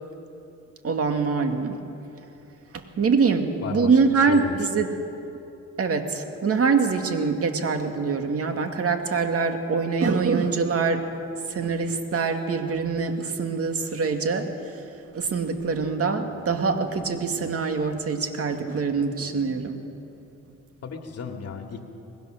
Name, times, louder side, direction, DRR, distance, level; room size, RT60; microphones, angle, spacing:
voice 1, 0.8-1.8 2.7-4.9 5.8-11.1 11.5-14.9 15.1-19.8, right 5 dB, 50° right, 5 dB, 2.3 m, -24 dB
voice 2, 4.3-4.6 20.8-21.9, left 5 dB, 55° left, 2 dB, 2.6 m, -34 dB
23.5 x 20.5 x 6.6 m, 2.8 s
cardioid pair, 90°, 30 cm